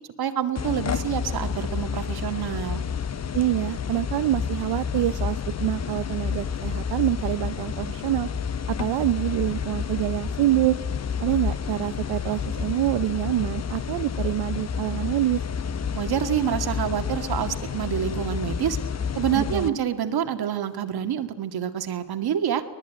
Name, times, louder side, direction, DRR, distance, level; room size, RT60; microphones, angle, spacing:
voice 1, 0.2-2.8 15.9-18.8 19.2-22.6, right 9 dB, 60° right, 7 dB, 2.0 m, -27 dB
sound 1, 0.6-19.7, left 6 dB, 40° left, 1.1 m, -30 dB
voice 2, 3.3-8.3 8.7-10.8 11.2-15.4 19.3-19.8, right 15 dB, 80° right, 12 dB, 0.8 m, -26 dB
23.5 x 19.5 x 9.2 m, 1.3 s
cardioid pair, 95°, 42 cm